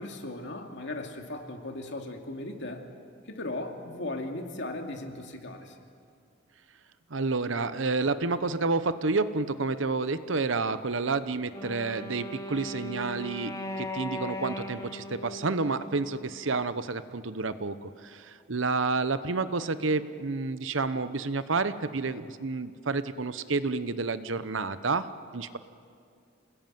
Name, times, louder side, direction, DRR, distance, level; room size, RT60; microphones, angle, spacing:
voice 1, 0.0-2.9 3.3-5.8, left 2 dB, 65° left, 3 dB, 2.6 m, -37 dB
voice 2, 7.1-25.6, right 3 dB, 70° right, 13 dB, 0.9 m, -30 dB
Wind instrument woodwind instrument, 11.5-16.6, left 1 dB, 15° left, 1.3 m, -38 dB
28.0 x 19.5 x 9.3 m, 2.4 s
head